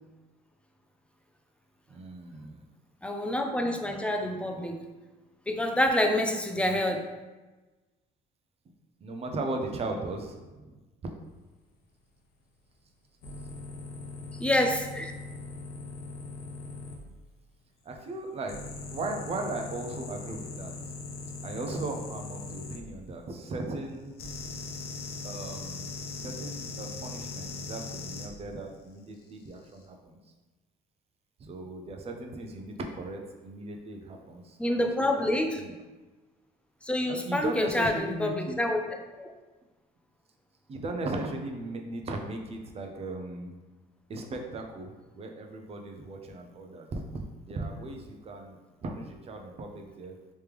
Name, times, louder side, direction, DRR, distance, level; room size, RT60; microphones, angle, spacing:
voice 1, 1.9-2.6 6.6-6.8 9.0-10.8 17.8-18.6 18.9-20.7 21.4-24.2 25.2-30.2 31.4-35.7 37.1-38.6 40.7-43.5 44.1-50.2, right 2 dB, 35° right, 3 dB, 0.6 m, -37 dB
voice 2, 3.0-4.8 5.5-7.0 14.4-15.1 34.6-35.6 36.8-38.8 39.2-39.3, left 1 dB, 5° left, 4 dB, 0.4 m, -27 dB
sound 1, 13.2-17.0 18.5-22.8 24.2-28.3 29.5-29.7, left 3 dB, 65° left, 0.7 m, -40 dB
3.3 x 3.1 x 3.3 m, 1.2 s
cardioid pair, 110°, 17 cm